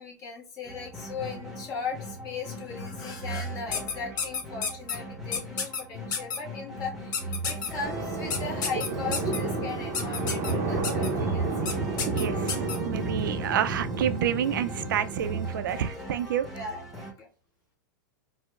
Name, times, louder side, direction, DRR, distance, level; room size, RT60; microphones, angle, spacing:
voice 1, 0.0-11.8 16.5-17.3, left 5 dB, 35° left, 1.1 m, -38 dB
sound 1, 0.6-17.1, right 1 dB, ahead, 0.9 m, -39 dB
sound 2, 3.7-5.0 5.3-5.8 6.1-6.4 7.1-7.7 8.3-9.4 9.9-10.5 10.8-11.1 11.7-11.8 12.0-12.8, left 6 dB, 70° left, 0.8 m, -30 dB
sound 3, 7.8-15.5, right 3 dB, 25° right, 0.6 m, -31 dB
voice 2, 12.1-16.5, right 9 dB, 80° right, 0.4 m, -29 dB
4.6 x 2.1 x 2.3 m
hypercardioid pair, 130°, 11 cm